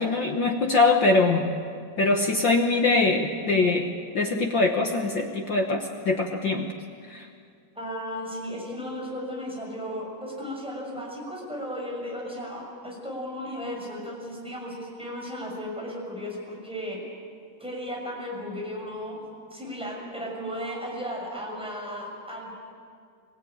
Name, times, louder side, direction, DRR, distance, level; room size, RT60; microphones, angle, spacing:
voice 1, 0.0-1.5 2.0-3.9 4.1-6.7 7.1-7.2, left 3 dB, 60° left, 3 dB, 1.2 m, -23 dB
voice 2, 7.7-17.0 17.6-19.2 19.5-22.6, equal, ahead, -2 dB, 6.2 m, -35 dB
26.0 x 16.5 x 8.9 m, 2.2 s
omnidirectional pair, 3.8 m